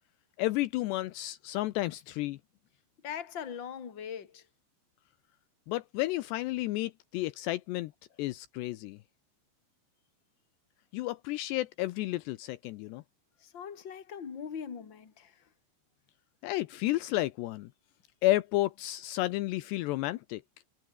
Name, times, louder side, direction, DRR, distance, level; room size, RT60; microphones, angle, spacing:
voice 1, 0.4-2.4 5.7-7.9 8.2-9.0 10.9-13.0 16.4-17.7 18.2-20.4, left 17 dB, 80° left, 2.7 m, -31 dB
voice 2, 3.0-4.4 13.4-15.3, left 7 dB, 30° left, 2.5 m, -41 dB
omnidirectional pair, 5.3 m